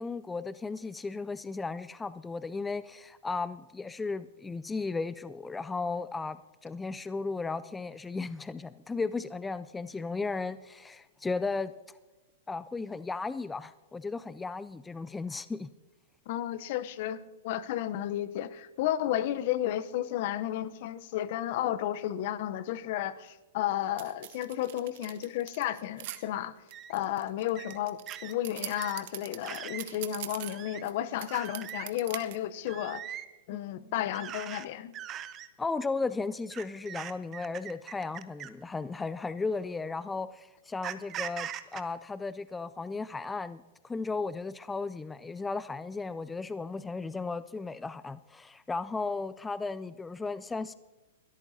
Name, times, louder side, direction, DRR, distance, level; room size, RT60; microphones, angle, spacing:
voice 1, 0.0-6.4 6.6-12.0 12.5-15.7 33.5-33.9 35.6-50.7, left 4 dB, 10° left, 15 dB, 0.3 m, -35 dB
voice 2, 16.3-26.5 26.9-33.2 33.5-34.9, left 12 dB, 55° left, 16 dB, 0.7 m, -33 dB
sound 1, 24.0-26.2 26.7-30.9 31.2-32.4, right 15 dB, 60° right, 1.0 m, -42 dB
sound 2, 26.1-26.2 26.7-26.9 27.5-27.8 28.1-28.3 28.8-29.0 29.4-29.9 30.4-30.8 31.3-31.9 32.7-33.3 34.1-34.6 34.9-35.5 36.5-38.6 39.5-39.7 40.8-41.8, right 10 dB, 30° right, 0.9 m, -41 dB
21.5 x 13.5 x 2.7 m, 1.2 s
hypercardioid pair, 120°, 0 cm